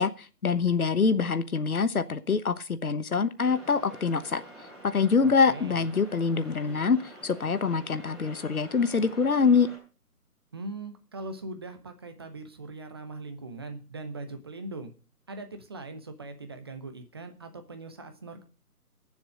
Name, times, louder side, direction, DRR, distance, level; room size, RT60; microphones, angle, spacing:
voice 1, 0.0-4.4 4.8-7.0 7.2-9.7, left 5 dB, 65° left, 13 dB, 1.2 m, -25 dB
sound 1, 3.4-9.8, right 1 dB, ahead, 4.8 m, -48 dB
voice 2, 5.2-5.8 10.5-14.9 15.3-18.4, right 2 dB, 15° right, 7 dB, 0.8 m, -40 dB
21.0 x 7.2 x 5.1 m, 0.34 s
figure-of-eight pair, 150°, 46 cm